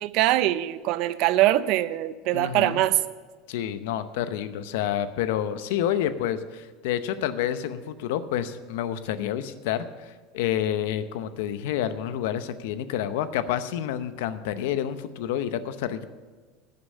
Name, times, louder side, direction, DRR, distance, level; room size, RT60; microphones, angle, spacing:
voice 1, 0.0-3.0, right 15 dB, 55° right, 15 dB, 0.5 m, -23 dB
voice 2, 2.3-2.8 3.5-16.1, left 10 dB, 80° left, 12 dB, 0.7 m, -29 dB
10.5 x 6.8 x 8.3 m, 1.4 s
supercardioid pair, 150°, 0 cm